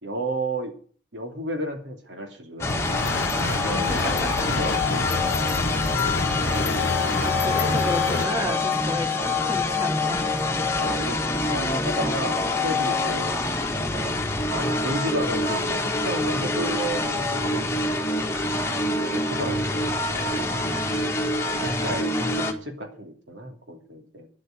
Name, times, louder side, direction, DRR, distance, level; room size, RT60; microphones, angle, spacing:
voice 1, 0.0-0.7 1.1-3.0 3.4-5.3 6.1-6.3 10.7-13.4 13.9-14.2 14.5-18.0 18.8-20.3 21.0-24.3, right 1 dB, 75° right, 4 dB, 2.8 m, -33 dB
sound 1, 2.6-22.5, left 2 dB, 15° left, 1.6 m, -25 dB
sound 2, 2.7-8.3, left 3 dB, 80° left, 0.9 m, -28 dB
voice 2, 3.3-3.8 4.2-4.5 7.2-10.3 20.6-21.0, left 1 dB, 20° right, 2 dB, 3.5 m, -32 dB
10.5 x 8.5 x 9.2 m, 0.43 s
head